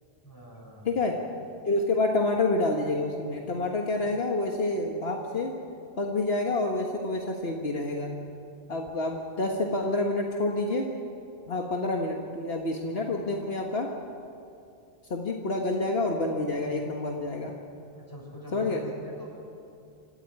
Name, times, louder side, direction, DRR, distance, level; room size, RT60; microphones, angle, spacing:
voice 1, 0.2-1.1 17.9-19.3, left 1 dB, 20° left, -4 dB, 8.0 m, -44 dB
voice 2, 0.9-1.2 1.7-5.5 6.0-8.1 8.7-10.9 11.5-13.9 15.1-17.5 18.5-18.8, left 2 dB, 65° left, 1 dB, 1.8 m, -28 dB
27.5 x 15.0 x 9.6 m, 2.5 s
omnidirectional pair, 1.1 m